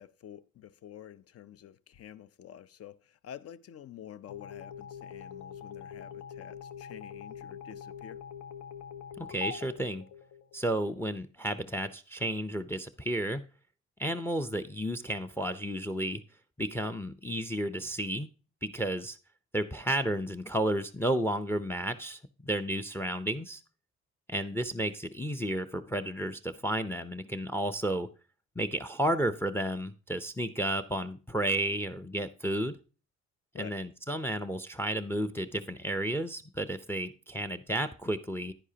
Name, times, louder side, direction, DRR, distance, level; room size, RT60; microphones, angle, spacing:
voice 1, 0.0-8.2 33.5-33.8, left 10 dB, 50° left, 0.6 m, -48 dB
sound 1, 4.3-10.8, left 7 dB, 70° left, 1.0 m, -44 dB
voice 2, 9.2-10.0 10.5-13.4 14.0-16.2 16.6-18.3 18.6-19.2 19.5-23.6 24.3-28.1 28.6-32.8 33.6-38.5, right 1 dB, 10° left, 0.5 m, -32 dB
10.0 x 9.8 x 2.8 m
cardioid pair, 90°, 30 cm